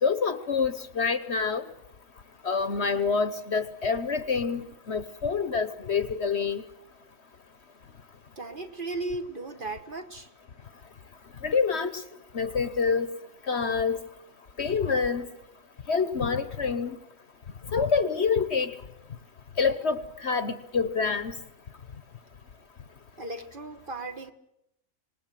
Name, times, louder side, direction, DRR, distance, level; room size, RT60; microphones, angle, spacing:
voice 1, 0.0-1.6 2.4-6.6 11.4-11.9 12.3-13.1 13.5-14.0 14.6-15.3 15.9-17.0 17.7-18.7 19.6-21.3, left 5 dB, 50° left, 12 dB, 1.2 m, -26 dB
voice 2, 8.4-10.3 23.2-24.3, right 2 dB, 35° right, 5 dB, 1.4 m, -36 dB
26.0 x 20.0 x 7.6 m, 0.84 s
omnidirectional pair, 1.6 m